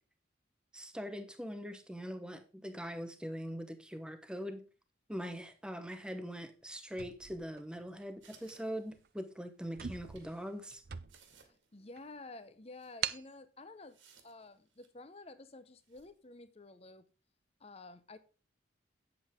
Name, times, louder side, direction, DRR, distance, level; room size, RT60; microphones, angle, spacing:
voice 1, 0.7-4.6 5.1-10.8, equal, 5° right, 0.9 m, -42 dB
sound 1, 6.9-8.2 8.9-9.1 9.4-9.5 9.7-11.5 12.0-12.1 13.0-13.3, right 9 dB, 50° right, 0.5 m, -42 dB
sound 2, 8.2-9.3 9.9-10.3 10.8-10.9 11.1-11.7 12.0-12.1 12.7-13.0 13.9-15.0 15.8-16.1, right 6 dB, 75° right, 2.1 m, -63 dB
voice 2, 11.4-14.0 14.2-17.1 17.6-18.2, left 2 dB, 30° left, 0.8 m, -51 dB
8.7 x 7.8 x 3.6 m
head